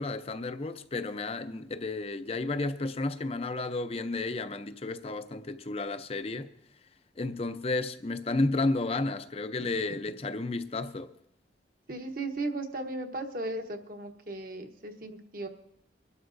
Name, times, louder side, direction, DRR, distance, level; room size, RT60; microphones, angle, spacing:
voice 1, 0.0-6.5 7.2-11.1, left 2 dB, 35° left, 0.5 m, -32 dB
voice 2, 11.9-15.5, right 2 dB, 50° right, 1.1 m, -36 dB
24.5 x 12.5 x 2.6 m
head